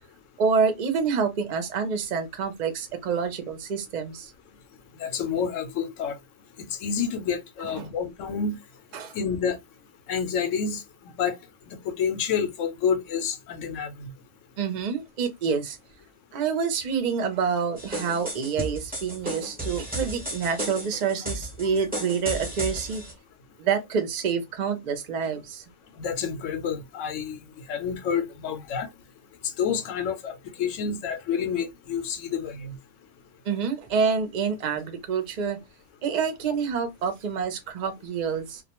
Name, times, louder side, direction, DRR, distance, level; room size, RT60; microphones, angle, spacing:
voice 1, 0.4-4.3 7.7-7.9 8.9-9.1 14.6-15.8 16.3-23.0 23.6-25.6 33.5-35.6 36.0-38.6, right 6 dB, 50° right, 0.6 m, -27 dB
voice 2, 5.0-6.2 6.8-8.6 9.1-9.6 10.1-10.8 11.2-11.4 11.7-14.1 21.7-21.9 26.0-27.4 27.7-28.9 29.6-32.7, left 6 dB, 85° left, 1.0 m, -28 dB
sound 1, 17.8-23.1, right 1 dB, 10° right, 0.7 m, -34 dB
2.3 x 2.1 x 2.8 m
omnidirectional pair, 1.3 m